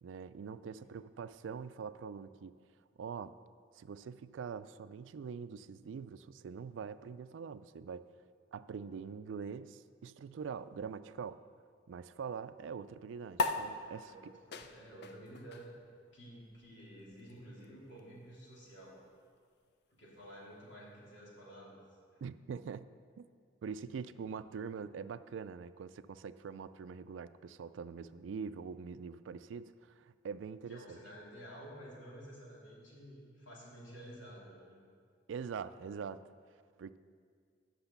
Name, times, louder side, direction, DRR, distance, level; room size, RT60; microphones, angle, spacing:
voice 1, 0.0-2.5 3.0-3.3 3.7-8.0 8.5-11.4 11.9-14.3 22.2-22.9 23.2-23.3 23.6-31.0 35.3-36.2 36.8-37.0, right 6 dB, 85° right, 14 dB, 0.3 m, -44 dB
sound 1, 13.3-20.2, left 3 dB, 60° left, 0.5 m, -42 dB
voice 2, 14.0-15.7 16.1-19.0 19.9-21.8 22.1-22.2 30.7-34.8, equal, 85° left, -5 dB, 2.7 m, -52 dB
8.0 x 6.2 x 7.0 m, 2.1 s
head